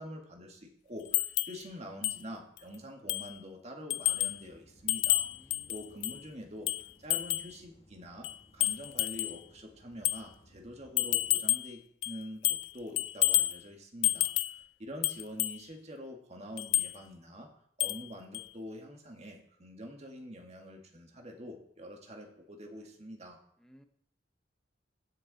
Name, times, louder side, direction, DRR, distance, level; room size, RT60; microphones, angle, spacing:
voice 1, 0.0-5.3 5.7-6.7 7.0-8.3 8.5-17.5 17.8-23.4, equal, 35° right, 2 dB, 2.0 m, -46 dB
sound 1, 1.1-1.6 2.0-2.2 2.6-2.7 3.1-3.4 3.9-4.4 4.9-6.2 6.7-7.5 8.2-9.4 10.0-10.2 11.0-11.7 12.0-12.7 13.0-13.6 14.0-14.6 15.0-15.6 16.6-16.9 17.8-18.1 18.3-18.5, left 17 dB, 70° left, 0.3 m, -30 dB
sound 2, 4.1-11.3, left 1 dB, 30° left, 1.1 m, -62 dB
voice 2, 5.2-5.8 15.0-15.1 23.6-23.8, equal, 5° left, 7 dB, 0.9 m, -60 dB
15.5 x 6.7 x 4.2 m, 0.66 s
head